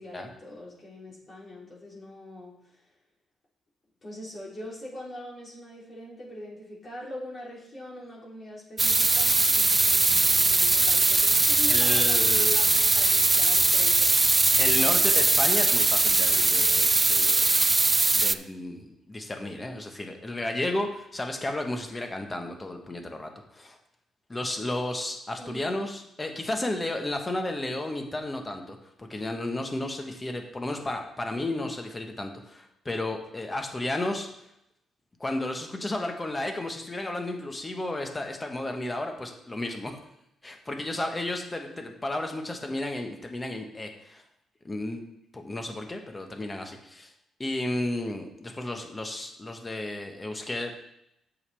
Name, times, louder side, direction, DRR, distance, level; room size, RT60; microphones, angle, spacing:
voice 1, 0.0-2.8 4.0-14.1 14.6-14.9 25.4-25.8, left 1 dB, 40° left, -5 dB, 3.3 m, -42 dB
sound 1, 8.8-18.3, right 3 dB, 20° right, 0.3 m, -21 dB
voice 2, 11.7-12.7 14.6-17.5 18.1-23.8 24.3-34.3 35.2-40.0 40.4-44.2 44.6-45.0 45.3-47.1 47.4-50.7, left 1 dB, 20° left, 4 dB, 1.3 m, -33 dB
8.1 x 7.3 x 3.5 m, 0.80 s
cardioid pair, 90°, 0 cm